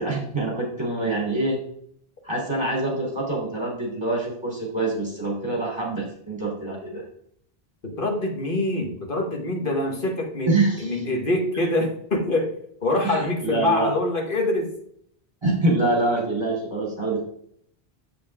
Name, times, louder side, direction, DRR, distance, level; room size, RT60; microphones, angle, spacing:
voice 1, 0.0-1.6 2.2-7.0 10.4-11.0 13.0-13.9 15.4-17.2, right 2 dB, 25° right, -3 dB, 3.6 m, -25 dB
voice 2, 7.8-12.5 12.8-14.7, left 2 dB, 55° left, 2 dB, 1.9 m, -25 dB
7.7 x 7.0 x 3.7 m, 0.67 s
omnidirectional pair, 1.0 m